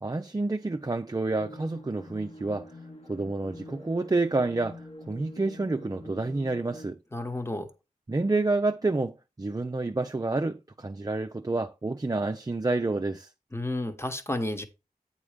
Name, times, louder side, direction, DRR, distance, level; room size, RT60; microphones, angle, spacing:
voice 1, 0.0-2.7 3.1-7.0 8.1-13.3, right 2 dB, 25° right, 0.5 m, -29 dB
sound 1, 1.4-6.9, left 1 dB, 45° left, 1.2 m, -46 dB
voice 2, 7.1-7.7 13.5-14.6, left 1 dB, 15° left, 1.2 m, -31 dB
8.5 x 4.4 x 5.0 m
wide cardioid pair, 60°, 14 cm